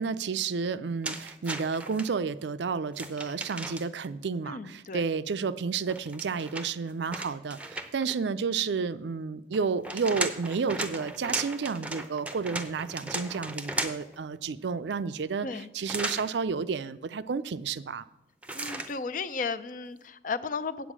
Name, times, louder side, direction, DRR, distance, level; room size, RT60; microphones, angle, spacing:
voice 1, 0.0-18.0, right 5 dB, 65° right, 14 dB, 0.4 m, -31 dB
sound 1, 1.0-2.1 2.9-4.1 5.9-8.1 9.5-14.2 15.9-16.3 18.4-18.9, right 2 dB, 5° right, 0.6 m, -36 dB
voice 2, 4.5-5.0 15.4-15.7 18.5-20.9, left 4 dB, 45° left, 14 dB, 0.5 m, -34 dB
8.2 x 8.1 x 6.0 m, 0.97 s
head